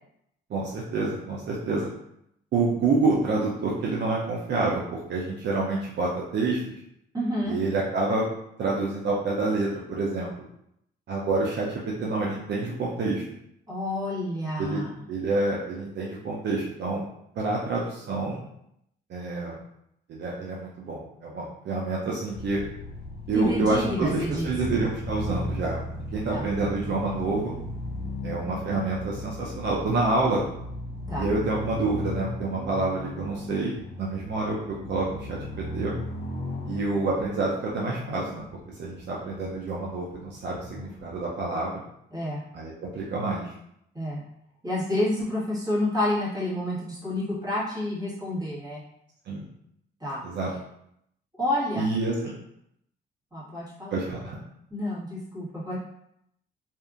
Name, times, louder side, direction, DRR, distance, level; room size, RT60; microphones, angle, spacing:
voice 1, 0.5-1.9 2.5-6.7 7.5-8.2 8.6-10.3 11.1-13.2 14.6-14.8 15.1-17.0 17.4-18.4 19.1-19.6 20.1-22.6 23.3-25.8 26.1-27.5 28.2-30.4 31.2-33.7 34.0-35.4 35.7-35.9 36.6-38.5 38.8-41.8 42.5-43.5 49.3-49.5 50.2-50.5 51.8-52.3 53.9-54.4, right 3 dB, 60° right, -4 dB, 0.6 m, -28 dB
voice 2, 7.1-7.6 13.7-14.9 23.3-24.5 26.3-26.4 31.1-31.3 42.1-42.4 43.9-44.2 44.6-48.8 50.0-50.2 51.4-51.9 53.3-54.0 54.7-55.8, left 1 dB, 20° right, -8 dB, 1.5 m, -29 dB
sound 1, 22.3-41.5, left 1 dB, 50° left, 0.6 m, -37 dB
2.7 x 2.5 x 2.4 m, 0.76 s
cardioid pair, 90°, 20 cm